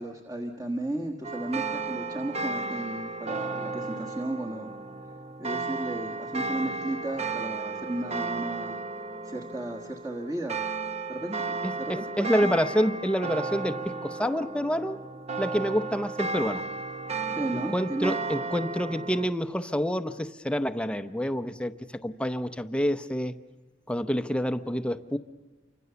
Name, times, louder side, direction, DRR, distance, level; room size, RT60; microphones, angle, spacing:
voice 1, 0.0-4.8 5.4-8.8 9.2-10.6 11.1-12.6 17.3-18.2, right 1 dB, 20° right, 0 dB, 1.4 m, -34 dB
sound 1, 1.2-19.3, right 3 dB, 35° right, 0.9 m, -34 dB
voice 2, 11.6-15.0 15.4-16.6 17.7-21.7 22.0-23.3 23.9-25.2, equal, 5° left, 10 dB, 0.7 m, -28 dB
28.5 x 25.0 x 6.9 m, 1.4 s
head